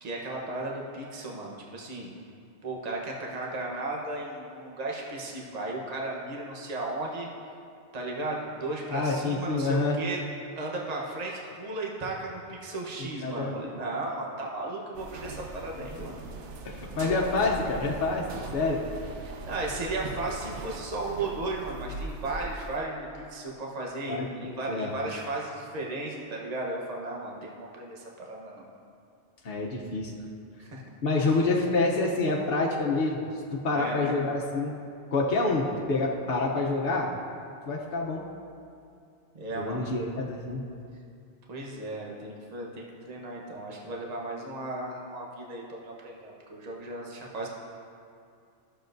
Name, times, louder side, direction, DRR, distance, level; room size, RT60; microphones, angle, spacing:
voice 1, 0.0-2.1 2.6-7.3 7.9-10.2 10.5-16.2 19.2-28.7 30.6-30.8 31.3-31.4 33.7-34.1 39.3-39.9 41.5-47.5, right 2 dB, 35° right, -2 dB, 1.0 m, -35 dB
voice 2, 8.9-10.0 13.2-13.5 16.0-16.1 16.6-18.8 24.1-24.9 29.4-30.1 31.0-33.2 33.5-34.7 35.1-37.1 37.7-38.2 39.5-40.6, left 3 dB, 55° left, -2 dB, 1.0 m, -27 dB
sound 1, 14.9-22.8, right 3 dB, 85° right, 1.0 m, -40 dB
14.0 x 6.8 x 2.6 m, 2.5 s
omnidirectional pair, 1.2 m